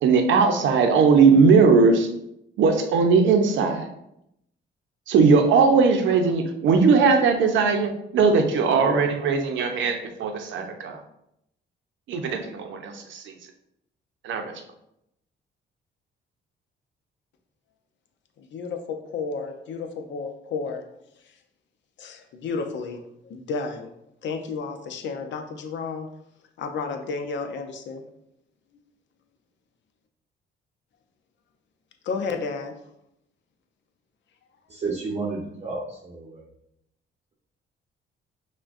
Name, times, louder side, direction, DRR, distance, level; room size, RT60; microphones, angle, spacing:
voice 1, 0.0-2.1 2.6-3.9 5.1-11.0 12.1-13.2 14.2-14.5, right 5 dB, 75° right, 5 dB, 0.6 m, -19 dB
voice 2, 18.4-20.8 22.0-23.9 24.2-26.1 26.6-28.0 32.0-32.8, left 4 dB, 70° left, 5 dB, 0.6 m, -32 dB
voice 3, 34.7-36.4, right 3 dB, 35° right, -4 dB, 0.7 m, -31 dB
5.9 x 2.2 x 2.5 m, 0.79 s
cardioid pair, 90°, 20 cm